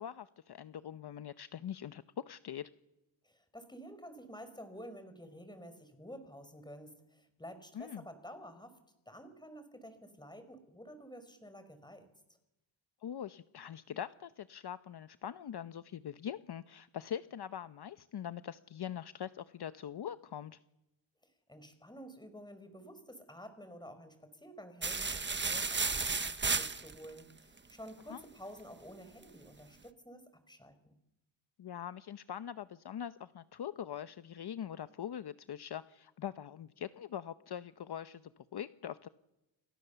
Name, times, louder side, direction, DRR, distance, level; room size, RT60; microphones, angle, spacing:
voice 1, 0.0-2.7 7.7-8.0 13.0-20.6 28.1-28.2 31.6-39.1, left 9 dB, 50° left, 12 dB, 1.0 m, -43 dB
voice 2, 3.2-8.8 9.1-12.1 21.5-30.9, equal, 10° left, 10 dB, 4.8 m, -51 dB
sound 1, 24.8-27.2, right 4 dB, 20° right, 1.3 m, -33 dB
29.0 x 23.5 x 7.0 m, 0.95 s
cardioid pair, 90°, 49 cm